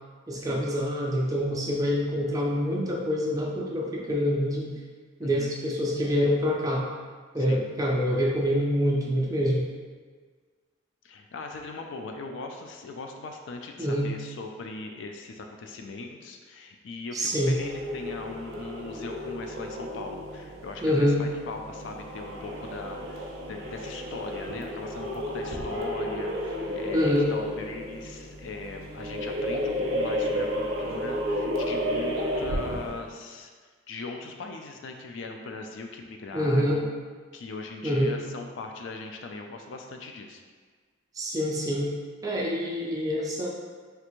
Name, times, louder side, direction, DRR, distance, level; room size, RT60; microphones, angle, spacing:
voice 1, 0.3-4.7 5.2-6.8 7.3-9.6 13.8-14.1 17.1-17.5 20.8-21.2 26.9-27.3 36.3-36.8 37.8-38.2 41.1-41.9 42.2-43.5, equal, 15° right, -3 dB, 0.4 m, -26 dB
voice 2, 5.2-5.5 7.5-7.7 11.0-33.5 33.9-36.9 37.3-40.4, left 3 dB, 70° left, 3 dB, 0.3 m, -39 dB
sound 1, 17.4-33.1, equal, 85° right, 0.5 m, -32 dB
3.4 x 2.4 x 3.0 m, 1.5 s
head